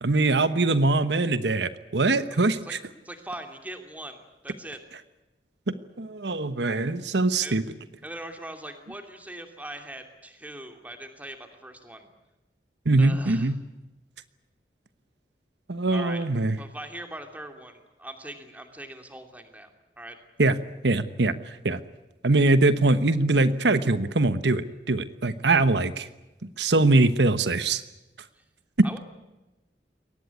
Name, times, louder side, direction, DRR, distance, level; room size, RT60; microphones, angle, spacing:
voice 1, 0.0-2.8 5.7-7.6 12.8-13.6 15.7-16.6 20.4-20.6 20.8-21.8 22.2-26.1 26.4-27.8 28.8-28.9, right 2 dB, 85° right, 12 dB, 1.1 m, -22 dB
voice 2, 3.0-4.8 7.4-7.6 8.0-12.1 13.0-13.5 15.9-16.2 16.6-19.7 20.0-20.2 28.3-28.4 28.8-29.0, right 1 dB, 10° right, 5 dB, 2.7 m, -41 dB
22.5 x 19.0 x 9.6 m, 1.1 s
head